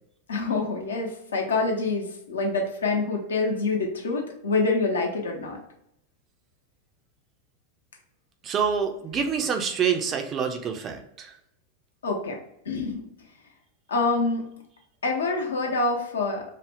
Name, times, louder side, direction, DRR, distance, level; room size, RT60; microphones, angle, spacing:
voice 1, 0.3-5.6 12.0-12.4 12.7-13.0 13.9-14.4 15.0-16.4, left 3 dB, 70° left, 1 dB, 0.6 m, -26 dB
voice 2, 8.4-11.3, right 7 dB, 30° right, 4 dB, 0.4 m, -27 dB
2.4 x 2.0 x 3.4 m, 0.77 s
figure-of-eight pair, 90°, 0 cm